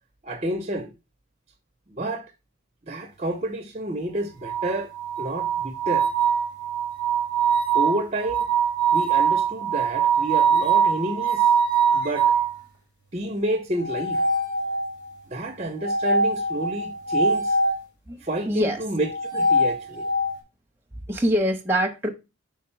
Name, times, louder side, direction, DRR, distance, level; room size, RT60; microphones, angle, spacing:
voice 1, 0.2-0.9 1.9-2.3 2.9-4.9 5.2-6.1 7.7-8.5 8.9-11.5 11.9-12.3 13.1-14.2 15.3-17.6 18.2-20.1, right 1 dB, 30° right, 0.6 m, -29 dB
sound 1, 4.4-12.5 13.8-15.1 15.8-17.8 19.0-20.4, right 5 dB, 55° left, 3.6 m, -23 dB
voice 2, 18.1-18.8 21.1-22.1, equal, 10° right, 0.9 m, -24 dB
4.6 x 4.4 x 5.7 m
head